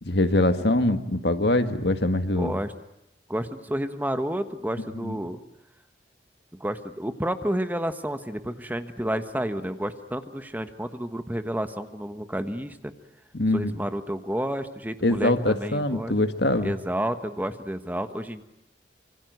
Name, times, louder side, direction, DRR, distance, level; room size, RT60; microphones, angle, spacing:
voice 1, 0.0-2.6 5.0-5.2 13.3-13.7 15.0-16.7, left 1 dB, 70° left, 8 dB, 1.8 m, -23 dB
voice 2, 2.4-2.7 3.3-5.4 6.6-12.9 13.5-16.2 16.6-18.4, equal, 10° right, 9 dB, 1.3 m, -30 dB
26.0 x 24.5 x 9.3 m, 0.83 s
head